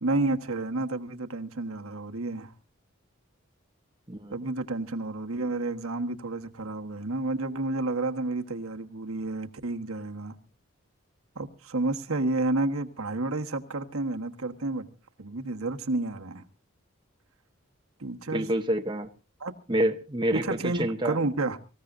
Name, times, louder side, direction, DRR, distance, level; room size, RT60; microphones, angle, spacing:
voice 1, 0.0-2.5 4.3-10.3 11.3-14.9 15.2-16.4 18.0-18.5 19.4-19.5 20.3-21.6, right 2 dB, 85° right, 1.4 m, -30 dB
voice 2, 18.3-19.1 19.7-20.5 20.8-21.2, right 1 dB, 20° right, 0.9 m, -27 dB
25.5 x 15.5 x 2.6 m
head